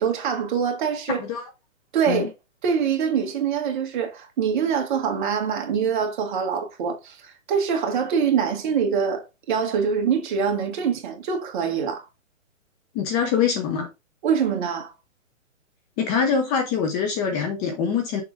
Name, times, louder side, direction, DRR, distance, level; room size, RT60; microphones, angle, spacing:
voice 1, 0.0-1.2 1.9-2.3 2.6-12.0 14.2-14.9, right 7 dB, 35° right, 1.6 m, -24 dB
voice 2, 1.1-1.4 2.1-2.3 12.9-13.9 16.0-18.2, left 6 dB, 15° left, 0.8 m, -24 dB
6.5 x 4.6 x 3.6 m
hypercardioid pair, 145°, 40 cm